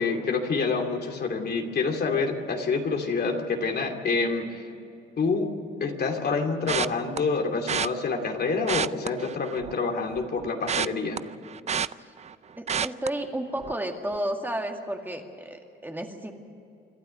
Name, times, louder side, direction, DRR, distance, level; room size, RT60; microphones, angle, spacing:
voice 1, 0.0-4.6 5.2-5.5 5.8-11.2, left 4 dB, 55° left, 3 dB, 2.6 m, -27 dB
sound 1, 6.7-7.2 7.7-7.9 8.6-9.8 10.1-12.3 12.7-13.1 13.6-13.8 14.1-14.2, right 7 dB, 35° right, 0.5 m, -29 dB
voice 2, 12.6-16.4, right 1 dB, 10° right, 3 dB, 2.1 m, -32 dB
26.5 x 12.0 x 9.4 m, 2.6 s
cardioid pair, 90°, 20 cm